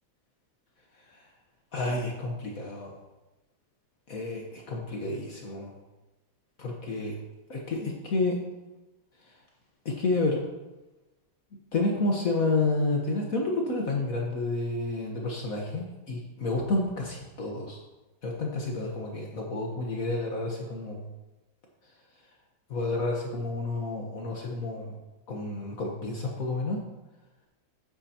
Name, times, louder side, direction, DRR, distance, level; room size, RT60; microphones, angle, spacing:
voice 1, 1.7-2.9 4.1-5.7 6.6-7.1 7.5-8.4 9.2-9.3 9.8-10.4 11.7-17.8 18.2-21.0 22.7-24.9 25.3-26.8, left 2 dB, 55° left, -1 dB, 1.5 m, -30 dB
12.0 x 8.7 x 2.8 m, 1.1 s
omnidirectional pair, 1.9 m